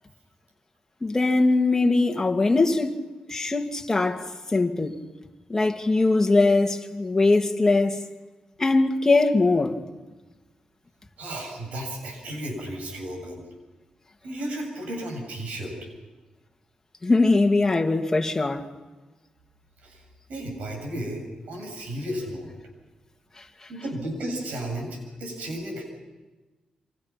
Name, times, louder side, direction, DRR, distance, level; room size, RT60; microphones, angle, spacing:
voice 1, 1.0-5.0 5.5-8.0 8.6-9.8 17.0-18.7 23.4-23.7, left 3 dB, 20° left, 2.2 m, -22 dB
voice 2, 11.2-13.4 14.2-15.8 19.8-20.0 20.3-22.5 23.7-25.8, right 1 dB, 90° right, 7.8 m, -33 dB
28.0 x 25.5 x 5.9 m
cardioid pair, 95°, 2 cm